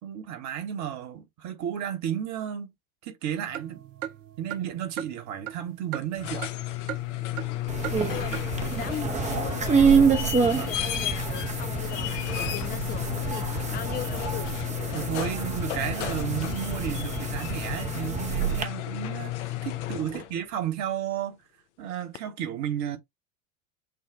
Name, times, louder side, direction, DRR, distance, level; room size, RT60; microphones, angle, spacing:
voice 1, 0.0-2.7 3.0-3.9 4.4-6.5 10.5-10.7 14.9-21.4 21.8-23.0, right 10 dB, 40° right, 1.3 m, -33 dB
sound 1, 3.5-6.6 6.9-7.5 7.8-8.0 8.3-8.4, right 12 dB, 65° right, 0.7 m, -37 dB
sound 2, 6.0-20.4 22.1-22.2, left 14 dB, 55° left, 0.8 m, -33 dB
voice 2, 7.5-8.4 8.8-14.5 20.1-20.3, left 11 dB, 25° left, 0.5 m, -39 dB
sound 3, 7.7-18.6, right 6 dB, 15° right, 0.8 m, -27 dB
6.6 x 2.4 x 3.3 m
figure-of-eight pair, 80°, 41 cm